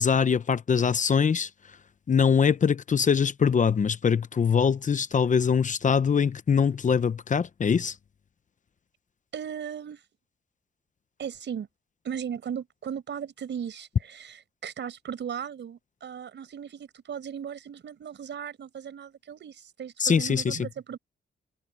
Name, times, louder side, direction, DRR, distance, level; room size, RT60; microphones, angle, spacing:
voice 1, 0.0-1.5 2.1-7.9 20.0-20.7, left 6 dB, 40° left, 0.8 m, -23 dB
voice 2, 9.3-10.0 11.2-11.7 12.0-21.0, right 8 dB, 70° right, 5.0 m, -37 dB
cardioid pair, 105°, 19 cm